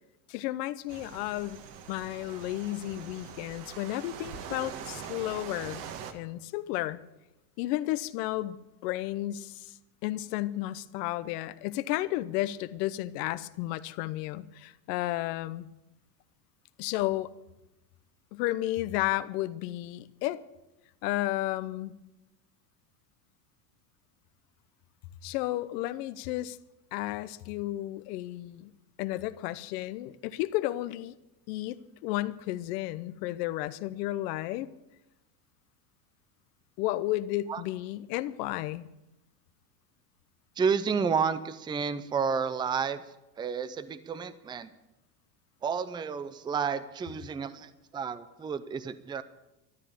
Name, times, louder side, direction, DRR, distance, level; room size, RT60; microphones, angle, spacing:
voice 1, 0.3-7.0 7.6-8.6 8.8-15.7 16.8-17.3 18.3-20.4 21.0-21.9 25.2-26.6 26.9-28.7 29.0-31.1 31.5-31.8 32.0-34.7 36.8-38.9, left 16 dB, 70° left, 14 dB, 1.0 m, -33 dB
sound 1, 0.9-6.1, right 7 dB, 55° right, 1.7 m, -43 dB
voice 2, 40.6-44.7 45.6-49.2, right 6 dB, 10° right, 14 dB, 0.5 m, -31 dB
13.5 x 9.8 x 8.5 m, 0.96 s
supercardioid pair, 125°, 49 cm